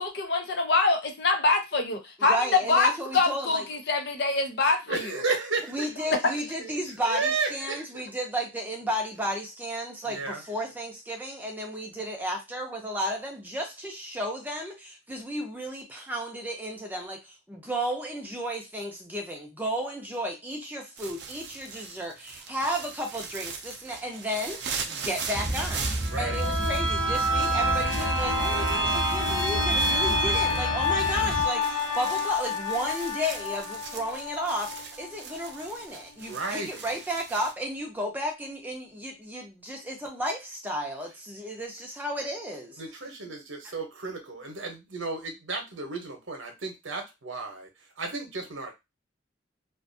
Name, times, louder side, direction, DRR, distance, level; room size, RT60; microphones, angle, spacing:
voice 1, 0.0-2.4 2.7-5.2, left 3 dB, 55° left, 0.6 m, -25 dB
voice 2, 2.2-3.6 5.7-42.8, equal, 10° right, 0.6 m, -33 dB
voice 3, 4.9-5.9 6.6-6.7 7.0-8.0 10.1-10.4 26.1-26.4 36.3-36.8 42.8-47.7 48.0-48.7, right 4 dB, 75° right, 0.8 m, -33 dB
sound 1, 21.0-37.5, right 6 dB, 55° right, 0.4 m, -40 dB
sound 2, 25.3-31.4, right 1 dB, 10° left, 0.9 m, -32 dB
sound 3, 26.0-35.6 36.0-36.1, left 1 dB, 80° left, 0.9 m, -28 dB
2.5 x 2.3 x 2.6 m
head